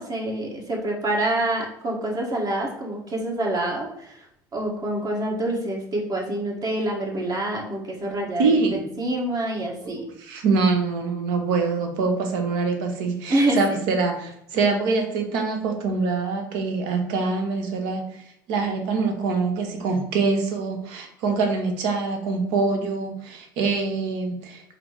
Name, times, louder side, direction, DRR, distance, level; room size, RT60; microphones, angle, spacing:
voice 1, 0.0-4.3 4.5-10.1 13.3-13.8, right 1 dB, 35° right, -1 dB, 1.5 m, -26 dB
voice 2, 8.4-8.8 9.8-18.2 18.5-24.6, right 4 dB, 65° right, 4 dB, 0.9 m, -24 dB
5.0 x 2.0 x 4.7 m, 0.76 s
hypercardioid pair, 70°, 11 cm